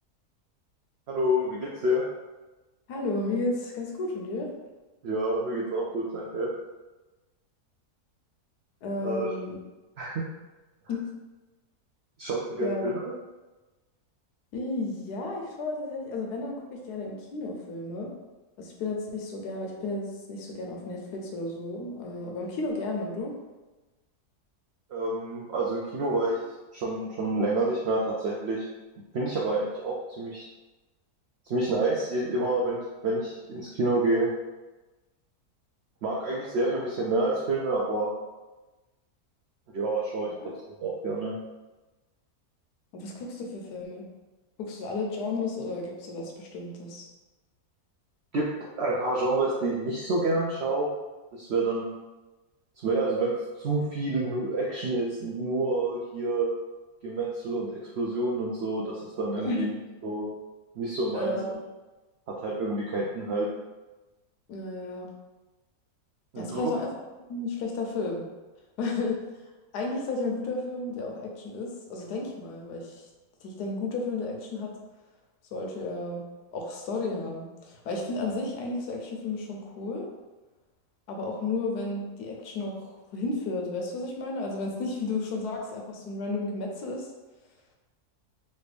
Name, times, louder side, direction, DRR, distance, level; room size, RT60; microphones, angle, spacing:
voice 1, 1.1-2.0 5.0-6.5 9.0-9.3 10.0-10.2 12.2-13.1 24.9-26.4 26.7-28.6 29.1-30.5 31.5-34.3 36.0-38.1 39.7-40.3 40.8-41.3 48.3-48.5 48.8-50.9 51.3-52.0 52.8-56.5 57.0-59.7 60.0-60.3 60.8-61.3 62.3-63.5 66.3-66.7, right 2 dB, 75° right, -3 dB, 0.6 m, -28 dB
voice 2, 2.9-4.5 8.8-9.6 10.9-11.1 12.6-12.8 14.5-18.1 18.6-23.4 40.4-40.5 42.9-44.0 44.6-47.1 59.4-59.6 61.1-61.6 64.5-65.1 66.4-66.9 67.3-68.2 68.8-69.2 69.7-73.1 73.4-74.7 75.5-76.2 76.5-80.1 81.1-87.1, left 3 dB, 90° left, 0 dB, 1.3 m, -33 dB
3.3 x 2.7 x 3.3 m, 1.1 s
omnidirectional pair, 1.6 m